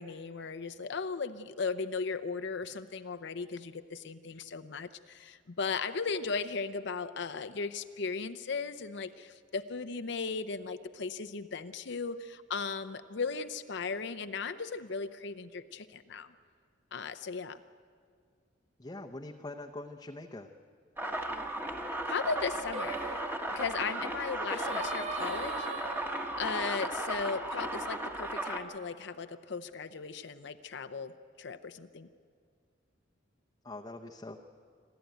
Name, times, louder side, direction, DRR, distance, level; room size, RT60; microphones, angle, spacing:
voice 1, 0.0-16.3 16.9-17.6 22.1-23.0 23.5-25.7 26.4-32.1, left 4 dB, 65° left, 11 dB, 0.7 m, -37 dB
voice 2, 18.8-20.5 33.6-34.4, left 2 dB, 20° left, 1 dB, 0.8 m, -43 dB
sound 1, 21.0-28.6, right 1 dB, 10° right, 1.6 m, -36 dB
Singing, 22.7-28.0, right 3 dB, 35° right, 1.0 m, -42 dB
27.0 x 12.5 x 9.2 m, 2.1 s
head